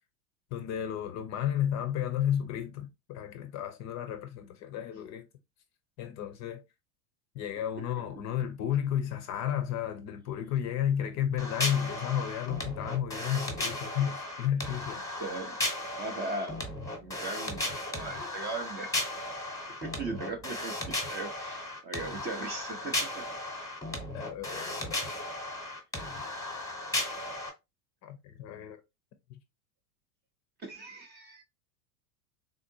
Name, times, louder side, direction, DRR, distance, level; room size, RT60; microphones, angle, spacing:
voice 1, 0.5-5.3 6.0-6.6 7.3-15.0 24.1-25.0 28.0-28.8 29.3-29.4, left 10 dB, 35° left, 0.5 m, -32 dB
sound 1, 11.4-27.5, left 1 dB, 5° left, 1.0 m, -36 dB
voice 2, 15.2-15.6 16.0-16.6 17.0-18.9 19.8-23.2 30.6-31.4, right 3 dB, 20° right, 0.5 m, -38 dB
3.6 x 2.5 x 2.6 m
hypercardioid pair, 105°, 50 cm